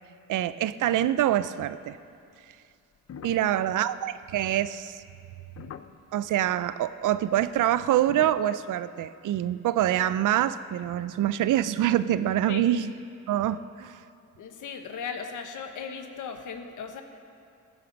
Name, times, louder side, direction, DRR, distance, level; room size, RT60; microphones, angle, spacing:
voice 1, 0.3-2.0 3.2-5.0 6.1-12.9 13.3-14.0, right 12 dB, 85° right, 14 dB, 0.5 m, -25 dB
sound 1, 3.0-6.3 7.3-8.4, left 8 dB, 55° left, 0.6 m, -45 dB
voice 2, 3.3-3.7 12.5-12.7 14.4-17.0, left 6 dB, 90° left, 6 dB, 1.2 m, -37 dB
14.5 x 12.5 x 5.2 m, 2.4 s
cardioid pair, 95°, 30 cm